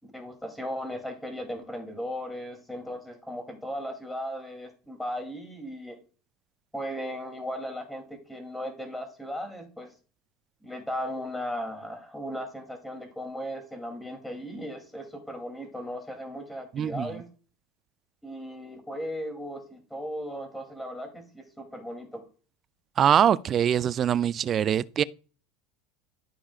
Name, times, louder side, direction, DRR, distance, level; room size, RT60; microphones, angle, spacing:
voice 1, 0.0-6.0 6.7-9.9 10.6-17.3 18.2-22.2, equal, 5° left, 2.8 m, -37 dB
voice 2, 16.7-17.1 23.0-25.0, right 9 dB, 35° right, 0.4 m, -23 dB
13.5 x 4.9 x 2.4 m
supercardioid pair, 110°, 0 cm